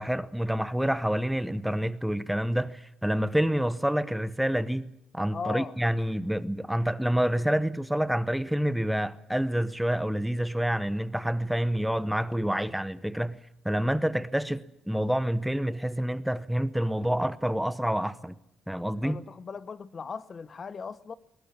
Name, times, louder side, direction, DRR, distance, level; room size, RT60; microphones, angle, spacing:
voice 1, 0.0-13.4 13.6-18.3 18.7-19.2, equal, 5° right, 0.9 m, -28 dB
voice 2, 5.3-5.7 19.0-21.1, left 5 dB, 35° left, 0.9 m, -38 dB
21.5 x 21.5 x 7.3 m
cardioid pair, 125°, 0 cm